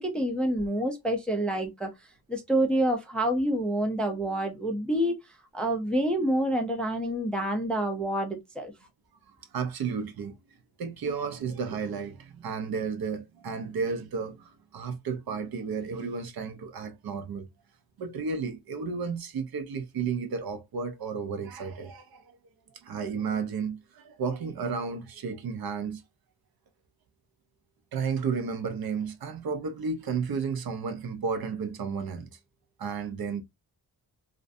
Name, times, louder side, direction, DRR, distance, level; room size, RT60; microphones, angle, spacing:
voice 1, 0.0-1.9 2.3-5.2 5.5-8.7, right 1 dB, 5° left, 0.3 m, -27 dB
voice 2, 9.3-10.4 10.8-17.5 18.0-22.2 22.8-26.0 27.9-32.3 32.8-33.4, right 5 dB, 70° right, 0.5 m, -33 dB
2.5 x 2.1 x 2.5 m
wide cardioid pair, 175°, 38 cm